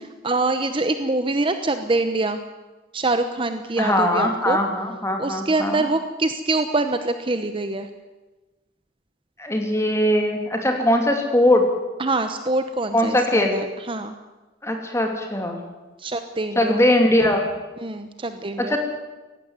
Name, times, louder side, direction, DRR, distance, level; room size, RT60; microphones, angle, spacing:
voice 1, 0.2-2.4 2.9-4.6 5.2-7.9 12.0-14.2 16.0-16.8 17.8-18.8, right 2 dB, 25° right, 8 dB, 0.9 m, -24 dB
voice 2, 3.8-5.8 9.4-11.6 12.9-13.6 14.6-15.6 16.6-17.6 18.6-18.8, left 1 dB, 15° left, 3 dB, 2.8 m, -20 dB
18.0 x 15.0 x 9.6 m, 1.2 s
head